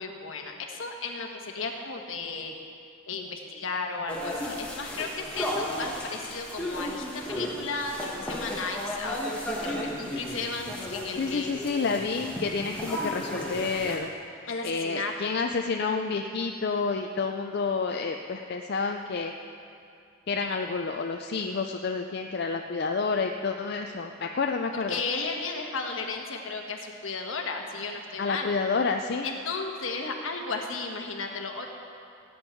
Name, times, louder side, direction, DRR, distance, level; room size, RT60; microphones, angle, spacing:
voice 1, 0.0-2.5 3.1-11.5 14.5-15.3 24.9-28.5 29.2-31.7, left 4 dB, 70° left, 2 dB, 1.3 m, -34 dB
sound 1, 4.1-14.0, equal, 5° left, 1.5 m, -34 dB
voice 2, 11.2-14.4 14.6-19.3 20.3-25.0 28.2-29.3, left 4 dB, 50° left, 3 dB, 0.4 m, -29 dB
18.0 x 8.8 x 4.5 m, 2.5 s
head